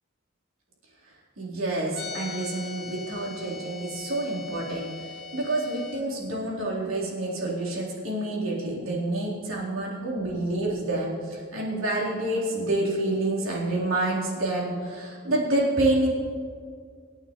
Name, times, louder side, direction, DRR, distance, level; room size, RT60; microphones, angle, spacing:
voice 1, 1.4-16.1, right 2 dB, 80° right, -5 dB, 3.9 m, -28 dB
sound 1, 1.9-6.0, left 5 dB, 90° left, 1.5 m, -40 dB
26.5 x 9.3 x 3.2 m, 2.1 s
head